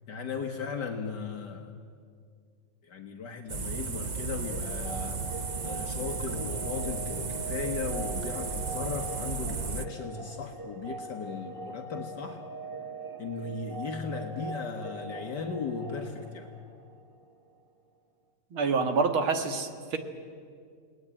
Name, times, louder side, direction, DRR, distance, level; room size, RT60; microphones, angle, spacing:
voice 1, 0.1-1.7 2.8-5.2 5.6-12.4 13.2-16.5, left 5 dB, 60° left, 3 dB, 1.9 m, -36 dB
sound 1, 3.5-9.9, right 4 dB, 70° right, 0.4 m, -34 dB
sound 2, 4.5-17.2, right 3 dB, 30° right, 1.3 m, -42 dB
voice 2, 18.5-20.0, right 4 dB, 90° right, 7 dB, 2.5 m, -27 dB
29.5 x 19.0 x 8.8 m, 2.2 s
omnidirectional pair, 2.2 m